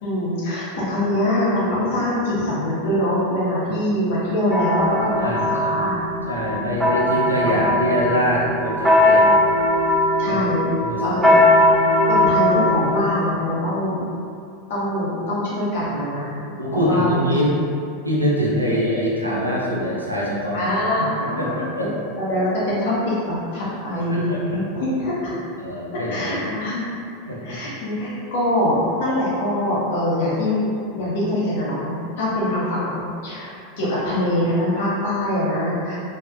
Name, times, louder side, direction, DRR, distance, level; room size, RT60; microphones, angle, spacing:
voice 1, 0.0-5.9 10.2-10.7 11.0-11.6 12.1-14.0 14.7-16.3 16.7-17.4 20.5-25.4 26.1-27.0 27.4-33.5 33.8-36.1, left 1 dB, 60° left, -8 dB, 0.8 m, -23 dB
sound 1, 4.5-13.0, left 1 dB, 10° right, 0.3 m, -19 dB
voice 2, 5.2-5.9 6.3-9.3 10.3-10.4 10.8-11.2 16.6-17.5 18.0-20.7 21.0-21.1 21.4-21.9 24.1-24.4 25.6-26.5 27.3-27.6, equal, 90° right, -5 dB, 0.5 m, -24 dB
2.7 x 2.3 x 2.5 m, 2.5 s
figure-of-eight pair, 85°, 0 cm